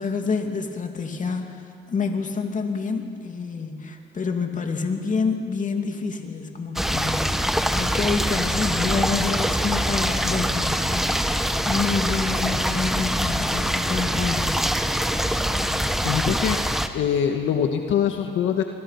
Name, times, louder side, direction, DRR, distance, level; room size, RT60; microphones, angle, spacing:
voice 1, 0.0-11.3 11.6-14.7, left 4 dB, 40° left, 4 dB, 2.7 m, -28 dB
sound 1, 6.8-16.9, equal, ahead, 1.3 m, -24 dB
voice 2, 16.0-16.6 16.9-18.6, left 8 dB, 80° left, 5 dB, 1.5 m, -23 dB
27.5 x 22.5 x 5.9 m, 2.7 s
cardioid pair, 90°, 20 cm